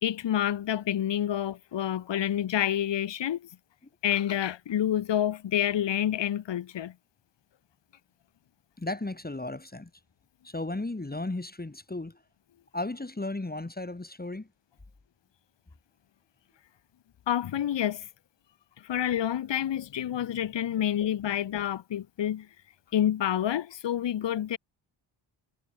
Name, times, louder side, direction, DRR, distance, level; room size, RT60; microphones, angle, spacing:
voice 1, 0.0-3.5 4.0-6.9 17.3-18.1 18.8-22.5 22.9-24.6, left 10 dB, 60° left, 1.0 m, -28 dB
voice 2, 8.8-9.9 10.4-12.2 12.7-14.5, left 2 dB, 20° left, 3.2 m, -35 dB
cardioid pair, 70°, 50 cm